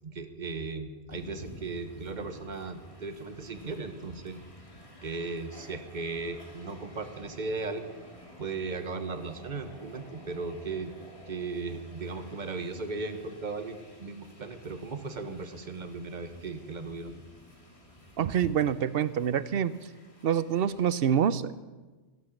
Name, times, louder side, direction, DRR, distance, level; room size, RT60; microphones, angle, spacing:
voice 1, 0.0-4.4 5.0-7.8 8.4-10.9 11.2-17.1, right 3 dB, 40° right, 8 dB, 1.3 m, -37 dB
Train, 1.1-21.1, equal, 30° left, 2.4 m, -52 dB
voice 2, 18.2-19.8 20.2-21.6, right 8 dB, 60° right, 16 dB, 0.8 m, -26 dB
15.0 x 11.5 x 7.2 m, 1.3 s
omnidirectional pair, 1.2 m